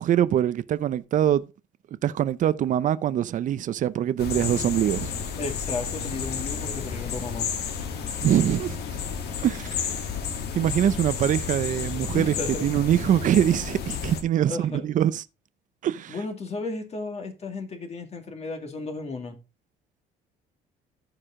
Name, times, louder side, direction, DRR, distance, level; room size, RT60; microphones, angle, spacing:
voice 1, 0.0-1.4 2.0-5.1 8.2-9.0 9.4-9.9 10.5-12.3 12.6-15.2 15.8-16.1, right 10 dB, 50° right, 0.6 m, -23 dB
sound 1, 4.2-14.2, left 6 dB, 75° left, 2.0 m, -31 dB
voice 2, 5.4-7.5 12.1-12.7 14.5-14.8 16.1-19.4, left 3 dB, 40° left, 2.1 m, -34 dB
14.5 x 4.9 x 3.7 m
cardioid pair, 110°, 17 cm